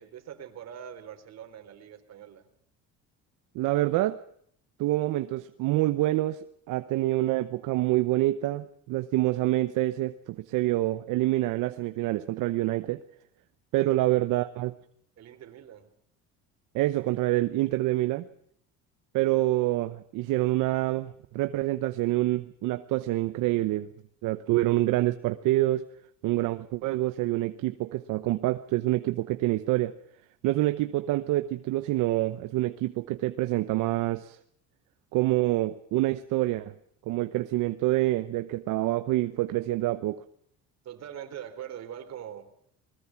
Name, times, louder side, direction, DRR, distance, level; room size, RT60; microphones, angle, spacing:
voice 1, 0.0-2.5 13.8-14.0 15.2-15.9 40.8-42.5, right 9 dB, 55° right, 8 dB, 3.8 m, -43 dB
voice 2, 3.5-4.2 4.8-13.0 13.7-14.7 16.7-18.3 19.1-23.9 24.2-25.9 26.2-29.9 30.4-34.4 35.1-36.7 37.1-40.2, right 17 dB, 75° right, 10 dB, 1.0 m, -26 dB
21.5 x 21.0 x 5.9 m, 0.67 s
cardioid pair, 120°, 31 cm